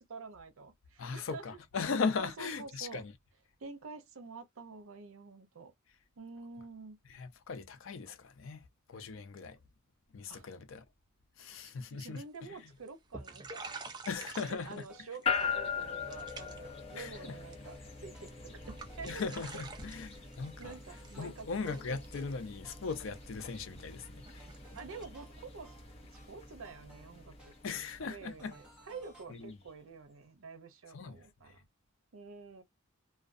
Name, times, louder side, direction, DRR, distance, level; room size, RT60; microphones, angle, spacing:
voice 1, 0.0-1.6 2.2-3.0 3.6-5.7 6.2-7.0 10.3-10.5 11.4-13.7 14.6-19.2 20.6-21.7 24.8-25.7 26.0-31.6 32.1-32.6, right 4 dB, 80° right, 0.6 m, -48 dB
voice 2, 1.0-3.1 7.1-8.6 8.9-9.6 10.1-10.8 11.4-12.6 14.1-14.9 16.9-17.4 19.0-20.8 21.2-24.5 27.6-28.6 29.3-29.6 30.9-31.2, left 5 dB, 70° left, 0.5 m, -38 dB
sound 1, 11.6-11.9 12.2-12.6 12.9-13.0 13.1-15.2 15.5-15.8 16.1-16.8 17.1-17.8 18.2-18.3 18.6-25.1, right 4 dB, 20° right, 0.4 m, -49 dB
sound 2, 13.4-29.3, equal, 5° right, 0.9 m, -63 dB
sound 3, 15.3-29.5, left 6 dB, 30° left, 0.7 m, -42 dB
2.4 x 2.2 x 2.4 m
head